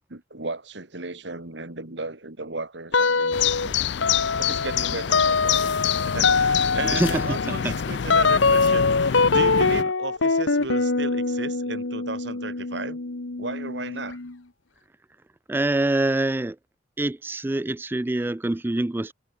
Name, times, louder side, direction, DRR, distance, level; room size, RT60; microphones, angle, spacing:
voice 1, 0.0-3.4 3.6-3.8 4.4-5.6 6.0-13.0 13.4-14.2, right 3 dB, 65° right, 2.4 m, -35 dB
sound 1, 2.9-3.7 4.0-14.3, left 4 dB, 90° left, 1.4 m, -23 dB
sound 2, 3.3-9.8, left 9 dB, 65° left, 0.4 m, -27 dB
voice 2, 6.9-7.7 15.5-16.6 17.0-19.1, right 2 dB, 10° right, 0.3 m, -25 dB
head